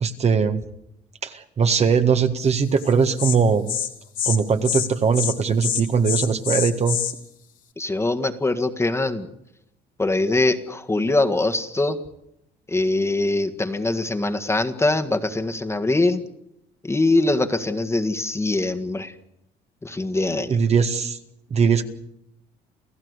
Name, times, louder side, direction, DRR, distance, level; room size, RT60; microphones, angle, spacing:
voice 1, 0.0-0.6 1.2-3.7 4.3-7.0 20.5-21.2 21.5-21.8, right 5 dB, 40° right, 7 dB, 1.7 m, -20 dB
Insect, 2.8-2.9 3.2-3.4 3.7-3.9 4.2-4.4 4.6-4.9 5.1-5.3 5.6-7.1, left 9 dB, 55° left, 3.2 m, -25 dB
voice 2, 7.8-9.3 10.0-12.0 12.7-16.2 16.8-19.1 19.8-20.6, left 2 dB, 15° left, 6 dB, 1.7 m, -22 dB
28.5 x 15.0 x 8.2 m, 0.80 s
cardioid pair, 110°, 17 cm